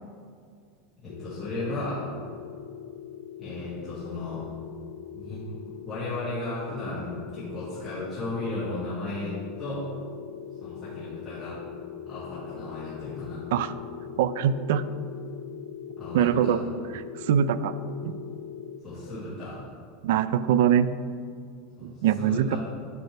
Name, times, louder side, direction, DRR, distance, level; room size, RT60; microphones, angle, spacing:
voice 1, 1.0-2.1 3.4-4.4 5.1-5.4 5.9-9.8 10.6-11.6 12.1-13.4 16.0-16.6 18.8-19.6 21.8-21.9 22.2-22.6, left 2 dB, 5° left, -14 dB, 2.1 m, -35 dB
sound 1, 1.1-18.8, left 9 dB, 65° left, 0.3 m, -41 dB
voice 2, 14.2-14.8 16.1-16.6 16.9-17.7 18.0-18.1 20.0-20.9 21.8-22.6, right 9 dB, 65° right, 15 dB, 0.3 m, -23 dB
10.5 x 6.9 x 3.3 m, 2.2 s
supercardioid pair, 170°, 0 cm